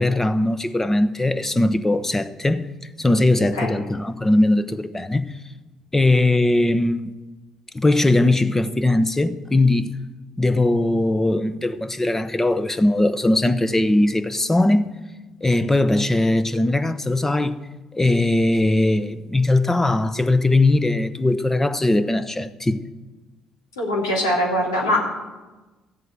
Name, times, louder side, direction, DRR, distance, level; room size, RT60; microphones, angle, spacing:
voice 1, 0.0-5.3 5.9-7.2 7.7-10.0 10.4-14.9 15.4-17.5 17.9-22.8, left 2 dB, 15° left, 0.9 m, -20 dB
voice 2, 23.8-25.0, left 1 dB, 85° left, 3.2 m, -22 dB
14.5 x 8.0 x 7.5 m
figure-of-eight pair, 50°, 2 cm